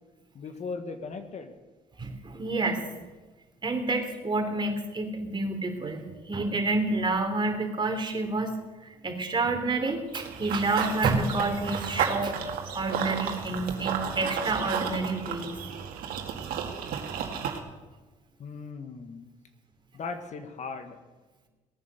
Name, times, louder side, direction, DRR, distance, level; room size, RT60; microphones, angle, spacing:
voice 1, 0.3-1.5 18.4-19.3 19.9-21.0, left 4 dB, 50° left, 7 dB, 1.6 m, -38 dB
voice 2, 2.0-2.8 3.6-8.5 8.8-12.4 12.7-15.5, right 3 dB, 30° right, 4 dB, 3.3 m, -29 dB
Run / Bird vocalization bird call bird song, 10.1-17.6, right 7 dB, 80° right, 2.1 m, -32 dB
18.5 x 9.5 x 6.8 m, 1.2 s
cardioid pair, 80°, 15 cm